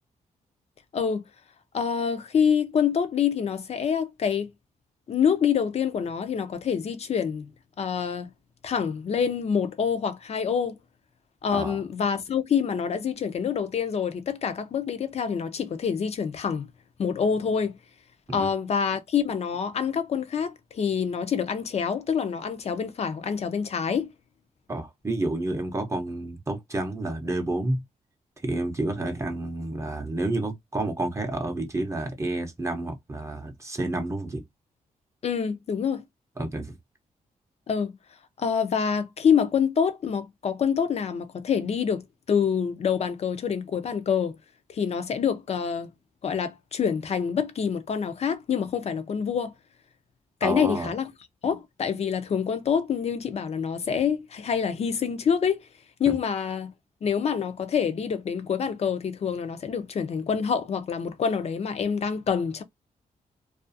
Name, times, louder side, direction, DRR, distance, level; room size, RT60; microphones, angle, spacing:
voice 1, 1.7-4.5 5.1-7.5 7.8-8.3 8.6-10.8 11.4-16.7 17.0-17.7 18.3-24.1 35.2-36.0 37.7-37.9 38.4-42.0 42.3-44.4 44.7-45.9 46.2-49.5 50.4-51.1 51.4-55.6 56.0-56.7 57.0-62.6, left 7 dB, 50° left, 0.5 m, -26 dB
voice 2, 24.7-27.8 28.4-34.4 36.4-36.7 50.4-50.9 56.1-56.2, right 2 dB, 20° right, 0.6 m, -30 dB
2.4 x 2.3 x 2.6 m
cardioid pair, 100°, 14 cm